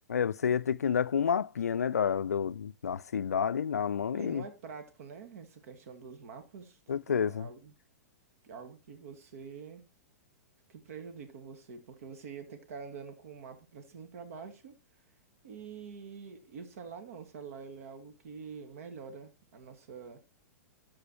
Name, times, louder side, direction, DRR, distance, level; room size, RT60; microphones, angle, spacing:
voice 1, 0.1-4.4 6.9-7.5, left 7 dB, 75° left, 0.4 m, -29 dB
voice 2, 4.1-7.7 8.4-9.8 10.7-14.7 15.4-20.2, right 6 dB, 60° right, 2.2 m, -46 dB
12.5 x 5.2 x 4.4 m
figure-of-eight pair, 105°, 9 cm